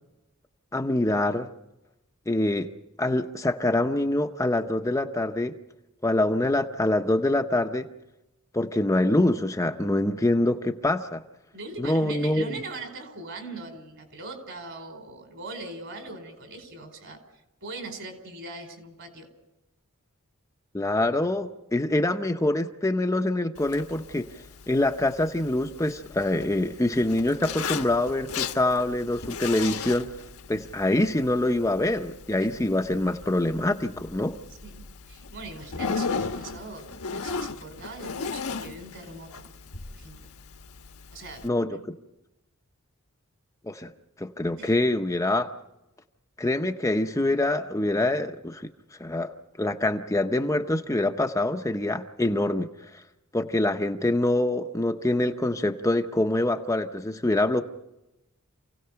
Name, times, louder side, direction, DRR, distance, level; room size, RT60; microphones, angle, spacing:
voice 1, 0.7-1.5 2.3-2.7 3.0-5.6 6.0-7.9 8.5-11.2 11.8-12.6 20.7-24.3 24.7-30.1 30.5-34.4 41.4-41.9 43.6-43.9 44.2-45.5 46.4-48.7 49.0-53.0 53.3-57.6, left 1 dB, 15° left, 5 dB, 0.7 m, -25 dB
voice 2, 11.5-17.2 17.6-19.3 34.6-39.4 39.9-40.2 41.1-41.9 44.6-44.7, right 2 dB, 60° right, 6 dB, 4.7 m, -41 dB
Zipper (clothing), 23.5-41.5, left 5 dB, 75° left, 1.2 m, -37 dB
28.5 x 17.0 x 5.8 m, 0.92 s
head